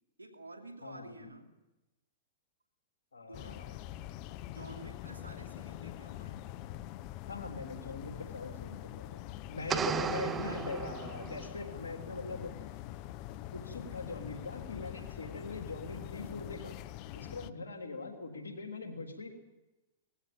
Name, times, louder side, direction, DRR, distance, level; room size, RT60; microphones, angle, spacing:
voice 1, 0.2-1.5 3.3-3.7 4.5-6.4, right 2 dB, 90° right, 2 dB, 2.7 m, -50 dB
voice 2, 0.8-1.3 3.1-3.8 7.3-9.2 9.5-12.5 13.5-16.8 17.1-19.3, left 3 dB, 85° left, 3 dB, 3.6 m, -42 dB
sound 1, 3.3-17.5, left 14 dB, 45° left, 0.7 m, -44 dB
sound 2, 9.7-11.6, right 7 dB, 20° right, 0.8 m, -35 dB
19.5 x 15.0 x 8.9 m, 1.0 s
hypercardioid pair, 110°, 0 cm